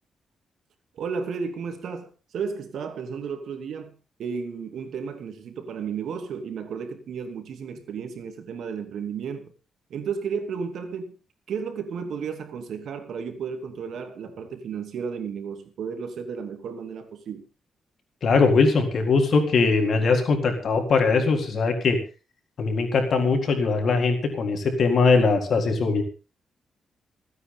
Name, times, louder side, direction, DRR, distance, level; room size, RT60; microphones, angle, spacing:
voice 1, 0.9-3.9 4.2-9.5 9.9-11.1 11.5-17.5, right 6 dB, 80° right, 6 dB, 2.9 m, -33 dB
voice 2, 18.2-22.0 22.6-26.0, left 4 dB, 60° left, 4 dB, 4.0 m, -21 dB
28.0 x 9.6 x 3.9 m, 0.33 s
cardioid pair, 120°, 0 cm